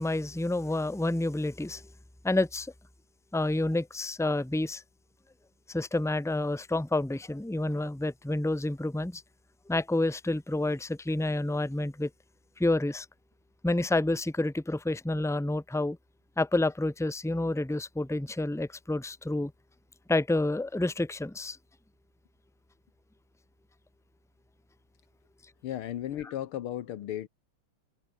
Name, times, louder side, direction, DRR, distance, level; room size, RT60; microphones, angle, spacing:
voice 1, 0.0-1.8 2.2-2.7 3.3-4.8 5.7-9.2 9.7-12.1 12.6-13.1 13.6-16.0 16.4-19.5 20.1-21.6, left 2 dB, 5° left, 0.4 m, -29 dB
voice 2, 25.6-27.3, left 11 dB, 85° left, 2.0 m, -35 dB
omnidirectional pair, 2.3 m